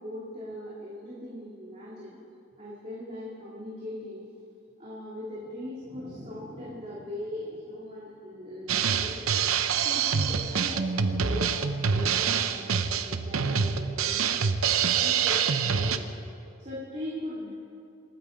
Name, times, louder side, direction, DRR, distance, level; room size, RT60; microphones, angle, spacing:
voice 1, 0.0-2.2 2.6-4.3 4.8-9.3 9.8-14.6 14.9-16.1 16.6-17.5, left 1 dB, 30° right, -7 dB, 2.4 m, -39 dB
Drum kit, 8.7-16.0, right 6 dB, 85° right, 0.7 m, -26 dB
27.0 x 9.3 x 5.1 m, 2.6 s
head